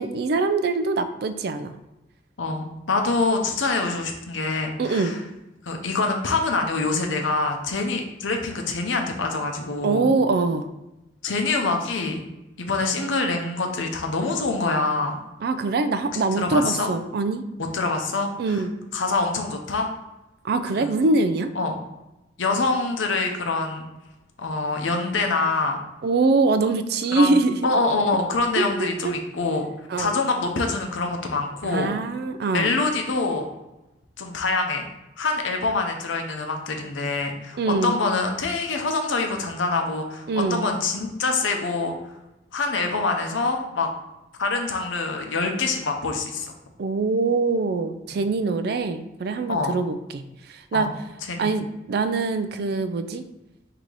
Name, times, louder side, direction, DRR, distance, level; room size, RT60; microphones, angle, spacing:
voice 1, 0.0-1.8 4.8-5.2 9.8-10.7 15.4-17.4 18.4-18.7 20.4-21.5 26.0-27.7 28.6-28.7 29.0-29.1 29.9-30.2 31.6-32.8 37.6-38.0 40.3-40.7 46.8-50.2 50.7-50.9 51.4-53.2, right 3 dB, 55° right, 10 dB, 0.3 m, -23 dB
voice 2, 2.4-5.2 5.6-10.1 11.2-12.2 12.6-15.2 16.1-16.9 17.7-18.6 18.9-19.9 20.7-20.9 21.5-21.8 22.4-23.9 24.4-25.8 27.1-29.7 30.0-31.9 32.5-33.5 34.2-34.9 35.2-41.9 42.5-43.9 44.4-46.5 49.5-49.8 50.7-50.9 51.3-51.6, left 3 dB, 90° left, 3 dB, 0.7 m, -25 dB
3.9 x 2.8 x 4.6 m, 0.96 s
head